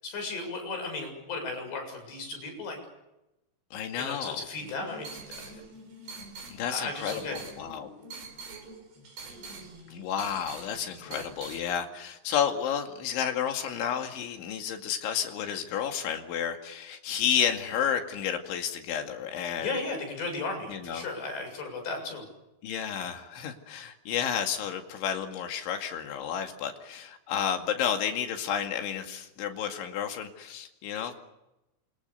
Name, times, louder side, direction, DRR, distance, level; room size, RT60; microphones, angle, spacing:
voice 1, 0.0-2.8 4.0-5.6 6.7-7.4 11.1-11.2 19.6-22.2, left 3 dB, 65° left, 3 dB, 9.4 m, -35 dB
voice 2, 3.7-4.4 6.5-7.9 9.9-19.7 20.7-21.1 22.6-31.1, left 8 dB, 90° left, 4 dB, 4.6 m, -31 dB
sound 1, 4.6-11.6, right 3 dB, 65° right, 7.5 m, -45 dB
28.5 x 25.5 x 6.9 m, 0.94 s
omnidirectional pair, 5.3 m